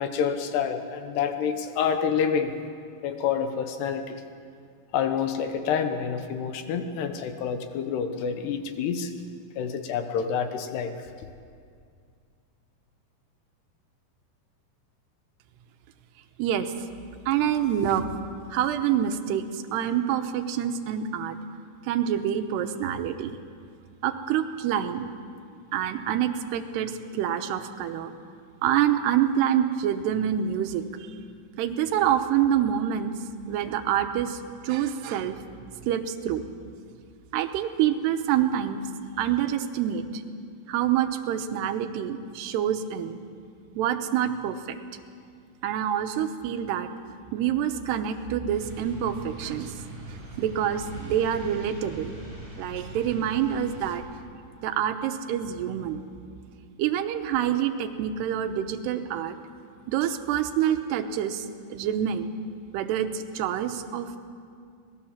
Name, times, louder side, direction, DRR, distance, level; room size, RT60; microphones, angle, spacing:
voice 1, 0.0-2.5 3.0-4.2 4.9-9.1 9.6-10.9, left 7 dB, 80° left, 7 dB, 3.2 m, -28 dB
voice 2, 16.4-16.7 17.3-18.1 18.5-21.4 21.8-23.4 24.0-25.1 25.7-28.1 28.6-30.8 31.6-33.2 33.5-35.4 35.9-36.4 37.3-38.8 39.2-40.2 40.7-43.2 43.8-44.8 45.6-46.9 47.3-52.2 52.6-54.0 54.6-56.0 56.8-59.4 59.9-61.5 61.7-62.3 62.7-64.2, right 10 dB, 85° right, 8 dB, 3.0 m, -27 dB
sound 1, 48.5-54.0, right 1 dB, 55° right, 7.3 m, -41 dB
25.0 x 19.0 x 7.3 m, 2.3 s
omnidirectional pair, 4.8 m